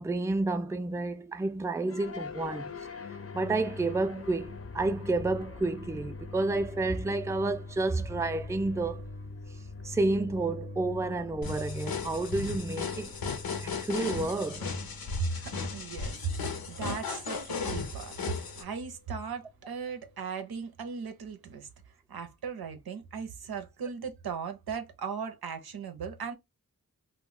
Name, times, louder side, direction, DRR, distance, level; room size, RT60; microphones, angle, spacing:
voice 1, 0.0-2.7 3.3-9.1 9.8-13.1 13.6-14.7, right 2 dB, 10° right, 0.4 m, -30 dB
sound 1, 1.9-20.2, left 3 dB, 40° left, 0.6 m, -43 dB
sound 2, 11.4-18.6, left 5 dB, 80° left, 0.7 m, -36 dB
voice 2, 15.2-18.1 18.6-21.7 22.1-26.3, right 5 dB, 90° right, 0.7 m, -37 dB
2.2 x 2.2 x 3.7 m
cardioid pair, 55°, 36 cm